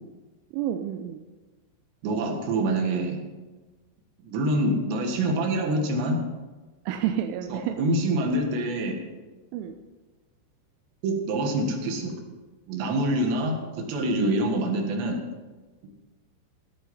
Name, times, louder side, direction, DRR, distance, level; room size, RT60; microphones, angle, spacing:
voice 1, 0.5-1.2 6.9-7.8 9.5-9.7 14.2-14.3, right 11 dB, 90° right, 5 dB, 3.1 m, -29 dB
voice 2, 2.0-3.2 4.2-6.2 7.5-9.0 11.0-12.1 12.7-15.2, right 1 dB, 70° right, 2 dB, 3.7 m, -26 dB
16.5 x 8.5 x 5.5 m, 1.2 s
omnidirectional pair, 5.6 m